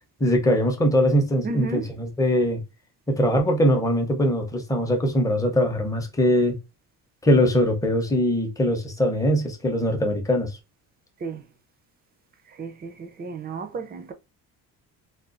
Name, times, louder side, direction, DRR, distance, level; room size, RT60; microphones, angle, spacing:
voice 1, 0.2-2.6 3.1-6.6 7.2-10.5, equal, 10° left, 0.7 m, -21 dB
voice 2, 1.4-1.9 11.2-11.4 12.5-14.1, right 4 dB, 30° right, 0.4 m, -33 dB
3.5 x 2.3 x 2.4 m
cardioid pair, 135°, 34 cm